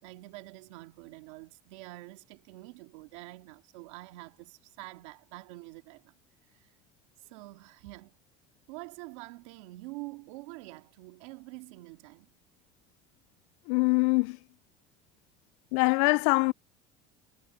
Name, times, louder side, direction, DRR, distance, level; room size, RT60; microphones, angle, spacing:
voice 1, 0.0-6.8 7.2-8.2 8.7-12.3, right 22 dB, 85° right, 2.5 m, -46 dB
voice 2, 13.7-14.4 15.7-16.5, left 29 dB, 80° left, 0.4 m, -23 dB
cardioid pair, 125°, 16 cm